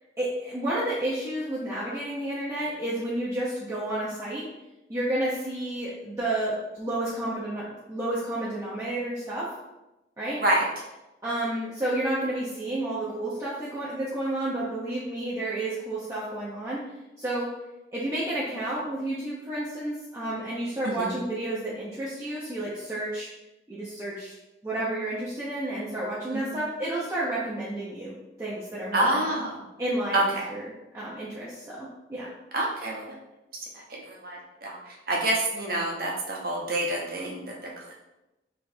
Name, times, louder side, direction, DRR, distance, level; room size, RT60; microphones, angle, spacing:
voice 1, 0.2-4.5 4.9-9.5 10.2-10.4 11.2-16.9 17.2-17.5 17.9-23.3 23.7-24.3 24.6-29.2 29.8-32.3, right 1 dB, 15° right, -8 dB, 0.6 m, -31 dB
voice 2, 20.8-21.2 26.3-26.4 28.9-29.6 30.1-30.5 32.5-33.0 33.9-37.9, right 1 dB, 50° right, -2 dB, 0.9 m, -27 dB
3.4 x 3.0 x 4.2 m, 0.99 s
head